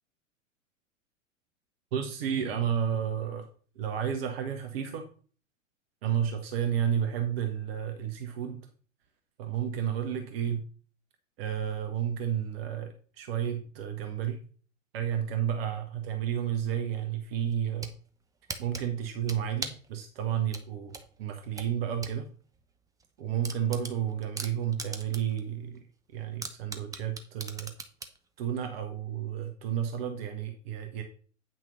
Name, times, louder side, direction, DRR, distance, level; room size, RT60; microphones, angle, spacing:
voice 1, 1.9-3.4 3.8-5.0 6.0-8.6 9.4-10.6 11.4-12.9 13.2-14.4 14.9-17.9 18.6-20.9 21.2-22.2 23.2-25.8 26.1-27.7 28.4-31.0, right 9 dB, 45° right, 6 dB, 1.3 m, -31 dB
sound 1, 17.5-18.0 18.5-19.9 20.5-22.2 22.5-22.6 23.0-23.1 23.4-25.4 25.8-25.9 26.4-28.2, right 4 dB, 10° right, 0.8 m, -39 dB
9.1 x 6.1 x 4.1 m, 0.41 s
figure-of-eight pair, 100°, 40 cm